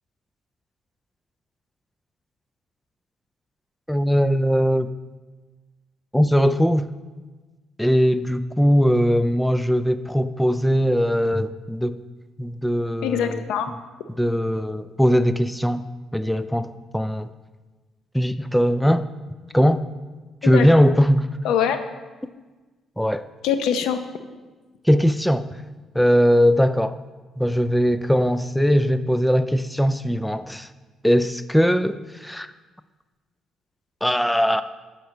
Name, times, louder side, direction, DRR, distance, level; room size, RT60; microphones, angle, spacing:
voice 1, 3.9-4.9 6.1-6.9 7.8-12.0 12.4-13.4 14.2-15.9 16.1-17.3 18.1-19.1 19.5-19.8 20.4-21.3 23.0-23.3 24.8-25.5 25.9-27.0 27.4-30.7 31.0-32.5 34.0-34.6, equal, 5° left, 12 dB, 0.4 m, -20 dB
voice 2, 13.0-13.7 20.4-20.7 21.4-21.8 23.4-24.0, left 8 dB, 85° left, 9 dB, 0.7 m, -23 dB
9.3 x 4.6 x 6.6 m, 1.3 s
cardioid pair, 90°, 0 cm